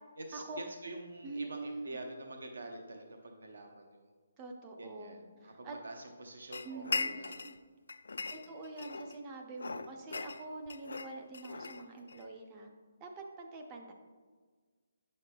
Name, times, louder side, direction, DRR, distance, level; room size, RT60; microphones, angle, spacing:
voice 1, 0.2-4.0 4.8-7.4 8.3-8.6, right 2 dB, 70° right, 3 dB, 0.7 m, -47 dB
voice 2, 1.2-2.0 4.4-5.2 5.4-5.8 6.6-7.1 7.4-7.5 8.3-12.7 13.0-13.9, right 3 dB, 15° right, 2 dB, 0.4 m, -45 dB
sound 1, 6.5-7.6 7.9-9.2 9.6-12.3, left 4 dB, 90° left, 0.3 m, -39 dB
8.2 x 6.5 x 2.2 m, 1.5 s
hypercardioid pair, 180°, 0 cm